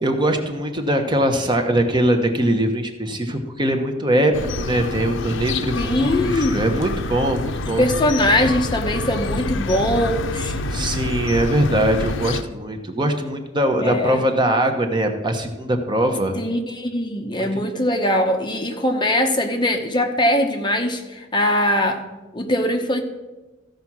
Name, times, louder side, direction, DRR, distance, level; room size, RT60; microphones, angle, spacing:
voice 1, 0.0-7.9 10.7-16.4 17.4-17.5, right 1 dB, 25° right, 5 dB, 0.9 m, -21 dB
sound 1, 4.3-12.4, left 3 dB, 70° left, 0.6 m, -27 dB
voice 2, 5.8-6.7 7.8-10.6 13.8-14.2 16.4-22.0 22.3-23.0, left 1 dB, 25° left, 4 dB, 0.9 m, -21 dB
14.5 x 5.1 x 6.0 m, 1.1 s
head